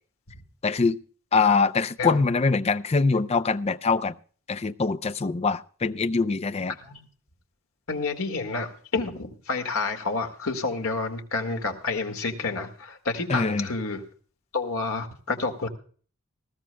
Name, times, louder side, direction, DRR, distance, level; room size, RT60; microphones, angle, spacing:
voice 1, 0.6-1.0 1.3-4.2 4.5-6.7 13.3-13.7, left 4 dB, 30° left, 12 dB, 0.5 m, -23 dB
voice 2, 6.7-7.1 7.9-14.0 14.5-15.7, left 3 dB, 75° left, 5 dB, 1.8 m, -29 dB
19.5 x 14.5 x 2.2 m, 0.43 s
head